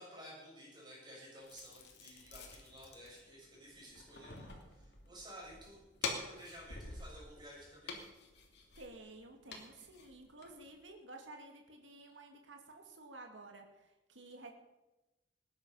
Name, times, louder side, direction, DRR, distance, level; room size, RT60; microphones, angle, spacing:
voice 1, 0.0-8.1, equal, 25° right, -4 dB, 7.6 m, -54 dB
sound 1, 1.4-10.7, left 4 dB, 65° left, 2.8 m, -47 dB
voice 2, 8.8-14.5, right 2 dB, 85° right, 2 dB, 2.3 m, -53 dB
20.0 x 10.5 x 5.6 m, 1.0 s
head